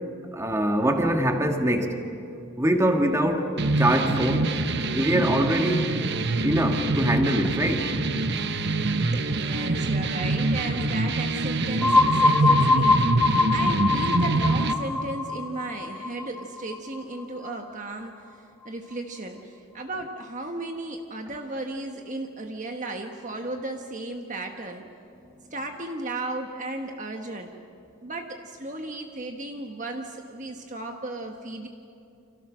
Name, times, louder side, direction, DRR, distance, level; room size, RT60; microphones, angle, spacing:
voice 1, 0.3-2.0 2.6-4.5 4.9-6.0 6.4-7.9, right 1 dB, 15° right, 4 dB, 1.8 m, -23 dB
sound 1, 3.6-14.7, right 2 dB, 50° right, 1.1 m, -25 dB
voice 2, 9.1-24.9 25.5-27.5 28.0-31.7, right 2 dB, 35° right, 4 dB, 1.3 m, -35 dB
sound 2, 11.8-17.5, left 3 dB, 5° left, 2.0 m, -23 dB
29.5 x 27.0 x 6.3 m, 2.6 s
head